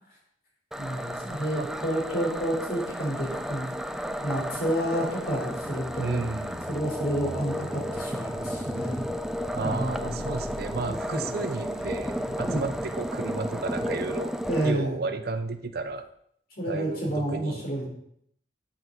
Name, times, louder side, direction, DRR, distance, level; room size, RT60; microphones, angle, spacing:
sound 1, 0.7-14.7, equal, 5° right, 0.5 m, -33 dB
voice 1, 0.8-3.7 4.2-6.2 6.7-9.0 9.6-10.3 10.9-11.4 12.5-12.7 14.4-15.0 16.6-17.9, right 1 dB, 55° left, -2 dB, 4.1 m, -30 dB
sound 2, 5.3-15.4 15.8-16.1, left 1 dB, 35° left, 0.9 m, -44 dB
voice 2, 6.0-6.7 9.5-14.3 14.6-16.1 16.6-17.6, right 3 dB, 55° right, 8 dB, 0.6 m, -32 dB
12.5 x 7.9 x 4.0 m, 0.70 s
head